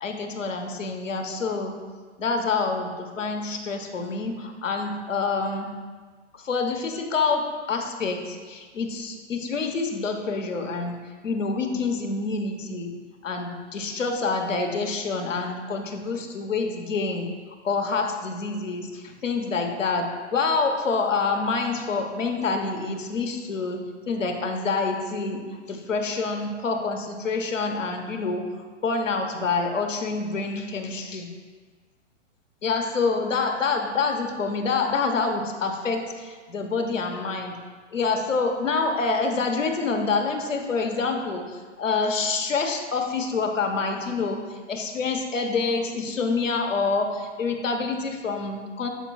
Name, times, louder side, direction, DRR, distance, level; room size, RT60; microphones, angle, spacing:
voice 1, 0.0-1.8 2.2-5.7 6.3-11.0 11.2-12.9 13.2-17.3 17.6-23.8 24.1-25.4 25.7-31.3 32.6-37.6 37.9-48.9, left 4 dB, 85° left, 4 dB, 1.2 m, -27 dB
11.5 x 4.6 x 2.4 m, 1.5 s
hypercardioid pair, 130°, 37 cm